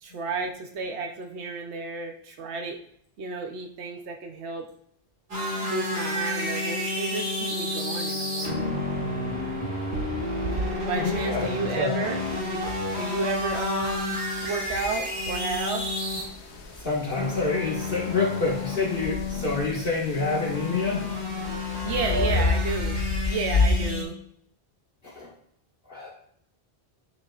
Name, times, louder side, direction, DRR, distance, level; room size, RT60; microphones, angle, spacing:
voice 1, 0.0-2.8 3.2-4.7 5.6-8.7 9.9-10.1 10.8-12.6 12.9-15.9 21.8-24.2, right 4 dB, 85° right, 3 dB, 1.1 m, -32 dB
sound 1, 5.3-24.0, left 2 dB, 70° right, 2.6 m, -31 dB
voice 2, 10.9-11.5 11.8-12.0 16.8-21.0 22.1-22.4 25.1-25.3 25.9-26.1, left 3 dB, 55° left, -5 dB, 1.9 m, -27 dB
sound 2, 12.2-23.9, left 3 dB, 90° left, 1.1 m, -32 dB
9.7 x 6.4 x 2.4 m, 0.68 s
omnidirectional pair, 1.1 m